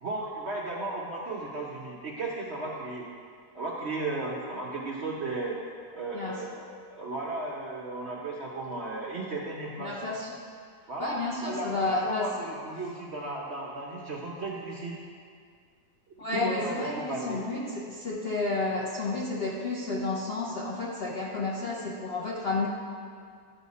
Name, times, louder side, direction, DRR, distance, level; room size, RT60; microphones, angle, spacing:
voice 1, 0.0-3.1 3.5-5.6 5.9-10.2 10.9-11.2 11.5-15.0 16.3-17.4, right 2 dB, 55° right, -3 dB, 0.7 m, -35 dB
voice 2, 9.8-10.3 11.0-12.3 16.2-22.7, left 3 dB, 60° left, -4 dB, 0.6 m, -31 dB
11.5 x 4.7 x 4.1 m, 2.1 s
omnidirectional pair, 1.9 m